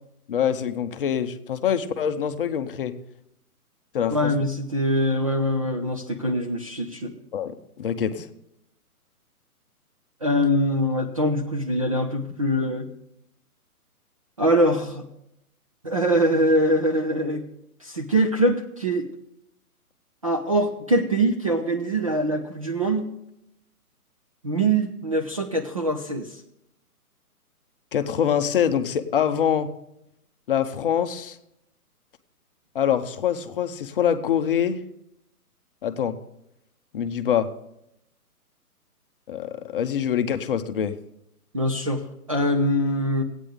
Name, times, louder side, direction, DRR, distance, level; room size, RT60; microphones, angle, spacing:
voice 1, 0.3-2.9 3.9-4.3 7.3-8.3 27.9-29.7 30.5-31.4 32.7-34.8 35.8-36.1 36.9-37.5 39.3-41.0, left 8 dB, 35° left, 10 dB, 0.7 m, -24 dB
voice 2, 4.1-7.1 10.2-12.9 14.4-15.0 15.8-17.4 17.8-19.1 20.2-23.1 24.4-26.4 41.5-43.2, right 1 dB, 25° right, 3 dB, 0.4 m, -23 dB
14.5 x 9.0 x 3.5 m, 0.80 s
hypercardioid pair, 140°, 45 cm